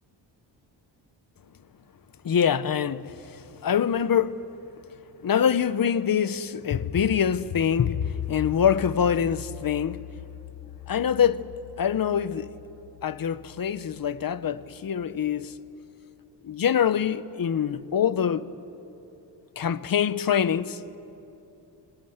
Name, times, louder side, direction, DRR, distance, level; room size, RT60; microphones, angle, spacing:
voice 1, 2.2-3.1 3.6-4.5 5.2-10.1 10.9-11.5 11.8-12.5 13.0-15.5 16.4-18.5 19.6-20.8, left 8 dB, 50° left, 0.9 m, -24 dB
27.0 x 26.0 x 8.1 m
cardioid pair, 105°, 45 cm